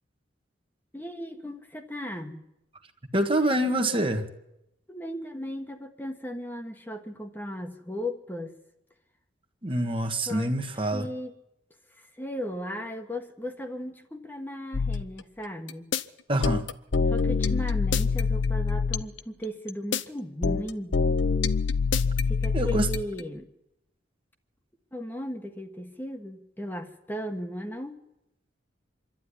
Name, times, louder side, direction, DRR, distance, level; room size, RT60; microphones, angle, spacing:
voice 1, 0.9-2.4 4.9-8.5 10.3-10.5 10.9-11.3 12.0-15.9 17.1-20.9 22.3-23.5 24.9-28.0, equal, 10° left, 5 dB, 1.4 m, -36 dB
voice 2, 3.1-4.3 9.6-11.1 16.3-16.7 22.5-22.9, right 1 dB, 30° right, 6 dB, 1.5 m, -26 dB
sound 1, 14.7-15.0 15.7-16.0 16.4-19.2 19.7-20.0 20.4-23.2, left 5 dB, 85° left, 0.8 m, -25 dB
26.5 x 12.0 x 10.0 m, 0.86 s
head